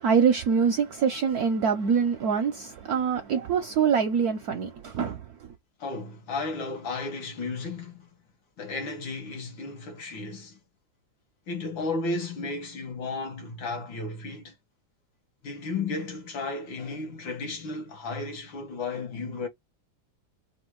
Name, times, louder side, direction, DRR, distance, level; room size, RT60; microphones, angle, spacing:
voice 1, 0.0-5.2, right 6 dB, 70° right, 0.9 m, -24 dB
voice 2, 5.8-8.1 8.6-10.6 11.5-14.5 15.4-19.5, left 3 dB, 70° left, 2.2 m, -34 dB
4.4 x 2.4 x 4.5 m
omnidirectional pair, 2.2 m